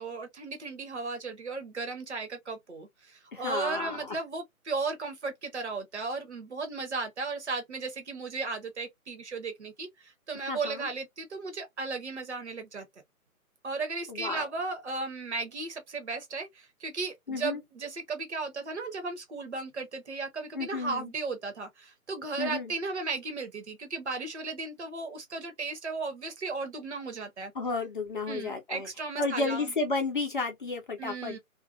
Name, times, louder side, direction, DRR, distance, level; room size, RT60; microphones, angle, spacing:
voice 1, 0.0-12.8 13.6-27.5 28.3-29.7 31.0-31.4, right 3 dB, 50° right, 0.9 m, -35 dB
voice 2, 3.3-4.2 10.5-10.9 14.1-14.4 17.3-17.6 20.5-21.1 22.4-22.7 27.5-28.9 29.2-31.4, left 3 dB, 35° left, 0.8 m, -32 dB
2.6 x 2.1 x 2.7 m
figure-of-eight pair, 150°, 44 cm